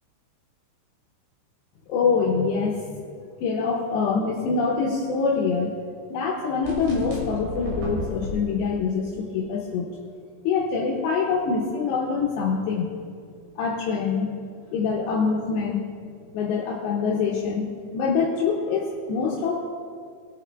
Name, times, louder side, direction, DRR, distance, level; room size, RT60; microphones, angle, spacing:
voice 1, 1.9-3.0 3.4-5.8 6.1-9.9 10.4-13.0 13.6-14.3 14.7-15.8 16.3-17.7 17.9-19.6, left 5 dB, 75° left, -2 dB, 2.8 m, -25 dB
sound 1, 6.6-8.3, left 1 dB, 75° right, 4.6 m, -32 dB
19.5 x 8.9 x 2.3 m, 2.2 s
omnidirectional pair, 5.5 m